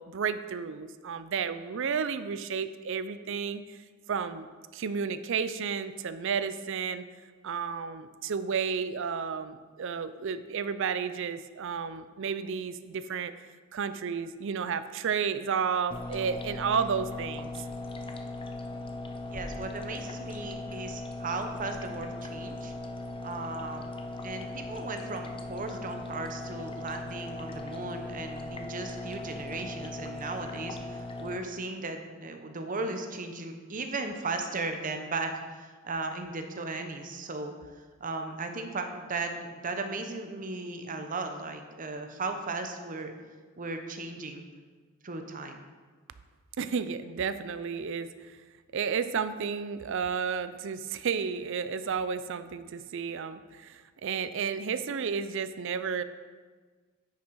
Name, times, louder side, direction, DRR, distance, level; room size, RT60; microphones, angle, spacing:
voice 1, 0.0-3.8 4.1-4.5 4.7-7.0 7.4-13.5 13.7-17.5 46.6-48.1 48.7-56.0, right 6 dB, 65° right, 12 dB, 0.5 m, -32 dB
sound 1, 15.9-31.4, left 2 dB, 25° left, 0.6 m, -39 dB
voice 2, 19.3-22.7 23.2-23.9 24.2-43.1 43.6-44.4 45.0-45.6, right 3 dB, 40° right, 6 dB, 0.8 m, -36 dB
9.6 x 6.1 x 4.7 m, 1.4 s
head